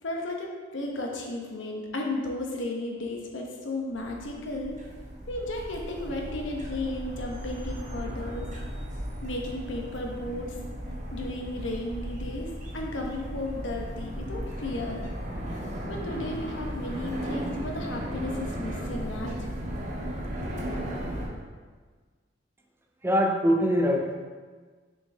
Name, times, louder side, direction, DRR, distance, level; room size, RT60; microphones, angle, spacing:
voice 1, 0.0-4.7 5.3-8.5 9.2-10.6 11.1-12.5 12.7-15.0 15.9-19.3, left 2 dB, 75° left, 0 dB, 1.0 m, -34 dB
sound 1, 3.9-21.3, equal, 40° right, 1.1 m, -36 dB
voice 2, 23.0-24.1, equal, 10° right, 2 dB, 0.4 m, -23 dB
6.3 x 4.5 x 3.3 m, 1.5 s
head